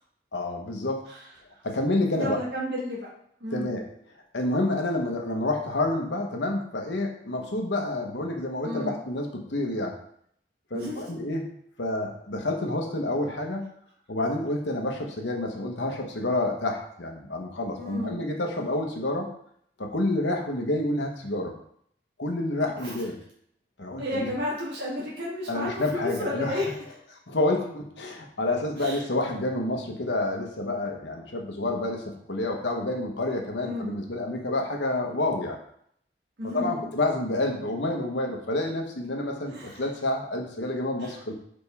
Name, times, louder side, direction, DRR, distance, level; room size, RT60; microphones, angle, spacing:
voice 1, 0.3-1.1 1.6-2.4 3.5-3.9 4.3-10.0 10.7-11.5 11.8-13.6 14.1-19.3 19.8-21.5 22.2-23.2 23.8-24.3 25.5-26.6 27.3-35.6 36.4-41.3, left 2 dB, 90° left, 2 dB, 1.2 m, -28 dB
voice 2, 2.1-3.1 3.4-3.7 8.6-9.0 10.7-11.1 17.8-18.2 22.6-22.9 24.0-26.7 28.8-29.0 33.6-34.0 36.4-36.8 39.5-39.8 41.0-41.1, left 1 dB, 75° right, -6 dB, 1.7 m, -32 dB
5.5 x 5.2 x 3.5 m, 0.66 s
head